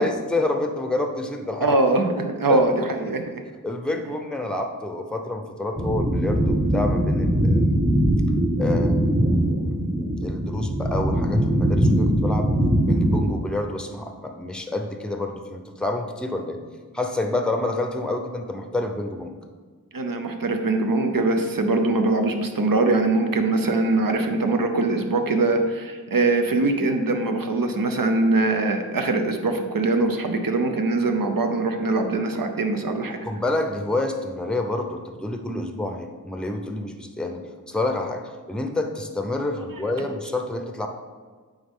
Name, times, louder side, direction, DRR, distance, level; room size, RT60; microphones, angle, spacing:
voice 1, 0.0-1.7 2.5-2.6 3.0-3.1 3.6-7.7 8.6-9.0 10.2-12.5 12.8-16.6 16.9-19.4 33.2-40.9, left 2 dB, 5° left, 5 dB, 0.6 m, -28 dB
voice 2, 1.6-3.4 19.9-33.2 40.0-40.1, right 2 dB, 75° right, 5 dB, 0.7 m, -22 dB
sound 1, 5.8-13.3, equal, 30° right, 1.6 m, -21 dB
9.0 x 3.6 x 3.6 m, 1.5 s
wide cardioid pair, 50°, 34 cm